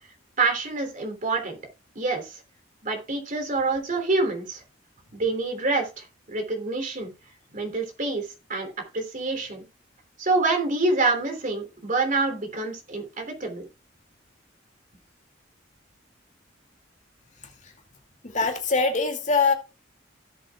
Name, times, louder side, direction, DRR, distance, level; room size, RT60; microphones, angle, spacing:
voice 1, 0.4-1.6 1.9-2.4 2.8-4.6 5.1-7.1 7.5-9.6 10.2-13.7, right 3 dB, 45° right, 3.2 m, -27 dB
voice 2, 18.3-19.5, left 4 dB, 40° left, 2.4 m, -22 dB
17.0 x 7.7 x 2.4 m
head